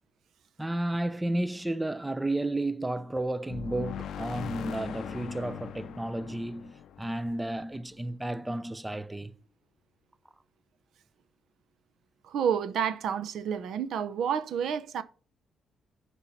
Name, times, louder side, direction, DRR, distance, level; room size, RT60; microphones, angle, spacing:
voice 1, 0.6-9.4, right 1 dB, 10° right, 0.4 m, -32 dB
sound 1, 3.5-8.1, left 9 dB, 70° left, 0.5 m, -40 dB
voice 2, 12.2-15.0, right 8 dB, 70° right, 0.6 m, -29 dB
6.8 x 4.5 x 5.9 m
cardioid pair, 90°, 0 cm